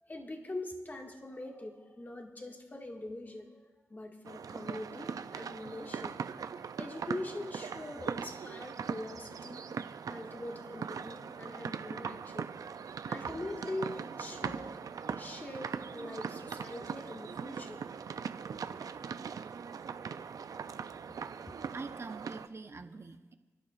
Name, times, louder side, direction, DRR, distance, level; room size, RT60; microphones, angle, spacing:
voice 1, 0.0-3.6 3.9-6.2 6.8-9.7 10.1-12.5 12.8-17.8 21.5-21.6, left 1 dB, 30° left, 1 dB, 2.1 m, -43 dB
sound 1, 4.3-22.5, right 6 dB, 75° right, 0.5 m, -40 dB
voice 2, 21.7-23.3, right 3 dB, 45° right, 7 dB, 1.0 m, -44 dB
29.5 x 11.5 x 2.6 m, 1.2 s
cardioid pair, 65°, 6 cm